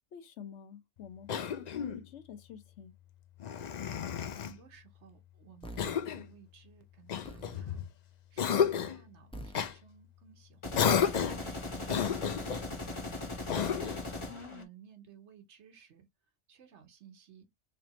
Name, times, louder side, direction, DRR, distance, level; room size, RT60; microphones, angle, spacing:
voice 1, 0.0-2.9 14.3-14.7, left 7 dB, 70° left, 1.1 m, -48 dB
Cough, 1.3-2.0 3.4-4.6 5.8-6.3 7.1-7.9 8.4-9.0 9.5-9.7 10.7-11.5 11.9-12.7 13.5-14.1, left 8 dB, 55° left, 0.5 m, -31 dB
voice 2, 4.4-7.8 8.3-13.4 14.3-16.1 16.5-17.5, right 8 dB, 70° right, 1.2 m, -57 dB
sound 1, 5.6-6.0 7.2-7.6 9.3-9.7 11.1-11.5, equal, 5° left, 0.5 m, -46 dB
sound 2, 10.6-14.6, left 2 dB, 25° left, 1.1 m, -39 dB
3.3 x 2.6 x 4.1 m
omnidirectional pair, 1.2 m